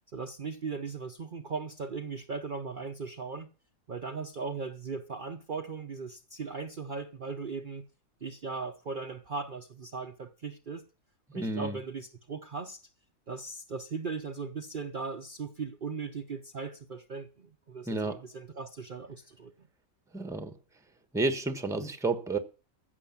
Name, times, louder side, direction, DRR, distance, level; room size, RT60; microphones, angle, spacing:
voice 1, 0.1-3.5 3.9-7.8 8.2-10.8 11.3-12.8 13.3-19.7, right 4 dB, 45° right, 0.9 m, -38 dB
voice 2, 11.3-11.8 17.9-18.2 20.1-20.5 21.1-22.4, right 3 dB, 5° right, 1.0 m, -31 dB
15.0 x 6.7 x 7.2 m
omnidirectional pair, 1.5 m